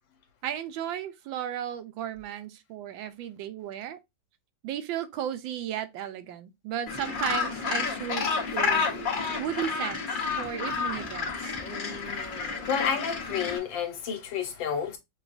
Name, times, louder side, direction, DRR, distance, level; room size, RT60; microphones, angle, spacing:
voice 1, 0.4-4.0 4.6-8.2 8.5-8.9 9.4-11.6, right 10 dB, 85° right, 1.3 m, -34 dB
Gull seagull, 6.9-13.6, left 5 dB, 45° left, 0.6 m, -30 dB
voice 2, 11.8-15.0, left 7 dB, 80° left, 1.6 m, -31 dB
5.9 x 2.3 x 2.5 m
omnidirectional pair, 2.1 m